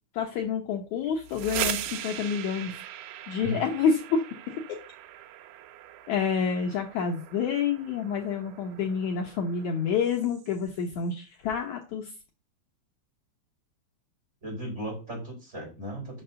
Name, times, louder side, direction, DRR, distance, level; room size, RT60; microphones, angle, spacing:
voice 1, 0.1-2.8 3.3-4.2 4.7-4.8 6.1-12.1, left 6 dB, 80° left, 2 dB, 1.7 m, -28 dB
sound 1, 1.1-10.8, right 11 dB, 75° right, 2.2 m, -39 dB
voice 2, 14.4-16.2, right 1 dB, 15° right, -1 dB, 4.4 m, -36 dB
5.9 x 5.7 x 5.5 m, 0.32 s
omnidirectional pair, 4.4 m